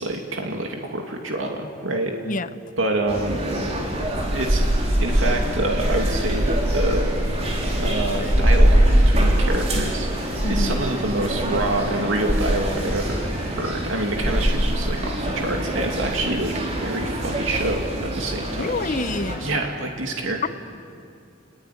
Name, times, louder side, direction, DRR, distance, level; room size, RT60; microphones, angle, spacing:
voice 1, 0.0-2.2 2.8-3.4 4.3-4.6 5.0-7.1 7.7-18.7 19.4-20.5, right 2 dB, 85° right, 2 dB, 2.5 m, -27 dB
voice 2, 2.2-2.6 10.4-10.8 18.6-19.5, left 2 dB, 40° left, 12 dB, 0.8 m, -27 dB
sound 1, 3.1-19.4, right 1 dB, 35° right, 4.0 m, -23 dB
Ocean, 4.6-18.7, equal, 15° right, 5.6 m, -39 dB
29.5 x 20.5 x 9.9 m, 2.5 s
head